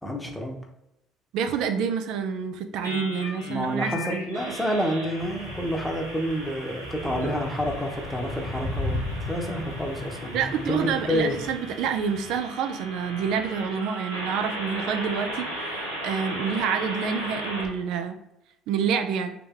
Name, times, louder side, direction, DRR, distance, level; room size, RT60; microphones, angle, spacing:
voice 1, 0.0-0.6 3.5-9.0 9.3-11.4, equal, 5° left, 1 dB, 0.9 m, -28 dB
voice 2, 1.3-4.2 10.3-15.5 16.0-18.1 18.7-19.3, right 7 dB, 60° right, 7 dB, 0.4 m, -28 dB
sound 1, 2.8-17.6, equal, 90° right, 0.8 m, -37 dB
sound 2, 5.2-12.4, left 2 dB, 50° left, 1.1 m, -36 dB
3.2 x 2.9 x 3.6 m, 0.85 s
figure-of-eight pair, 55°, 0 cm